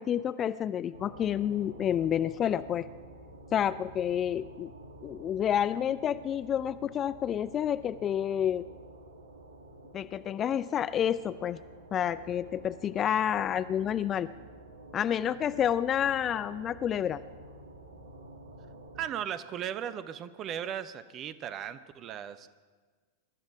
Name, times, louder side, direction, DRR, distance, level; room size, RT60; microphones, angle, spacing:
voice 1, 0.0-2.9 3.5-4.7 5.0-8.6 9.9-11.6 11.9-14.3 14.9-17.2, left 9 dB, 25° left, 15 dB, 0.4 m, -29 dB
sound 1, 0.9-19.1, right 1 dB, 70° right, 1.4 m, -50 dB
voice 2, 19.0-22.5, right 9 dB, 30° right, 13 dB, 0.8 m, -37 dB
22.0 x 13.0 x 4.8 m, 1.4 s
figure-of-eight pair, 90°, 0 cm